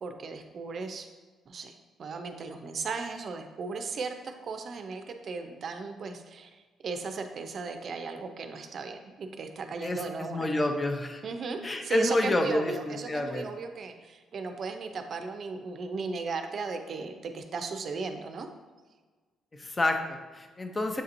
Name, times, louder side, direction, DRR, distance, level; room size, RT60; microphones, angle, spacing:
voice 1, 0.0-1.1 1.5-10.5 11.2-18.5, right 4 dB, 55° right, 6 dB, 0.5 m, -36 dB
voice 2, 9.8-11.2 11.6-13.5 19.5-21.0, left 1 dB, 25° left, 5 dB, 0.6 m, -29 dB
7.3 x 2.8 x 2.5 m, 1.4 s
cardioid pair, 90°, 0 cm